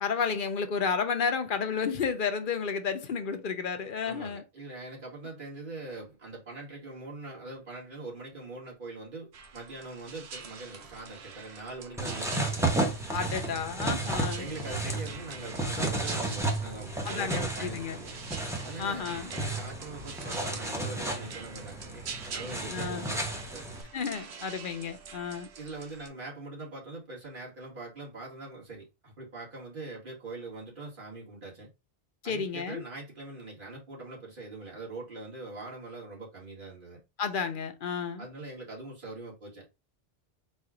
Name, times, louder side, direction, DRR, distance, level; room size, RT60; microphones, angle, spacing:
voice 1, 0.0-4.4 13.1-14.5 17.0-18.0 18.8-19.3 22.7-23.1 23.9-25.5 32.2-32.8 37.2-38.3, left 6 dB, 60° left, 0.8 m, -32 dB
voice 2, 4.0-12.6 14.4-18.2 18.6-22.0 22.3-23.8 25.6-31.7 32.2-37.0 38.2-39.7, right 2 dB, 55° right, 2.2 m, -42 dB
sound 1, 9.3-26.1, right 6 dB, 90° right, 1.1 m, -45 dB
sound 2, 12.0-23.8, right 2 dB, 5° right, 0.8 m, -33 dB
4.3 x 2.4 x 4.8 m
omnidirectional pair, 1.1 m